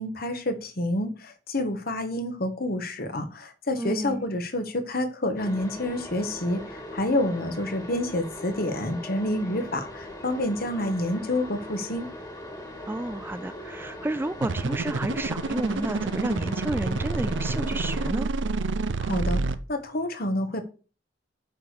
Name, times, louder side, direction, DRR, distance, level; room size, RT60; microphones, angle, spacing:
voice 1, 0.0-12.1 19.0-19.4 19.7-20.6, left 1 dB, 55° left, 1.5 m, -28 dB
voice 2, 3.8-4.3 12.9-18.3, right 1 dB, 10° right, 0.4 m, -31 dB
sound 1, 5.4-18.1, left 1 dB, 20° left, 2.1 m, -40 dB
sound 2, 14.4-19.6, right 3 dB, 80° right, 0.6 m, -28 dB
8.7 x 4.9 x 6.7 m
head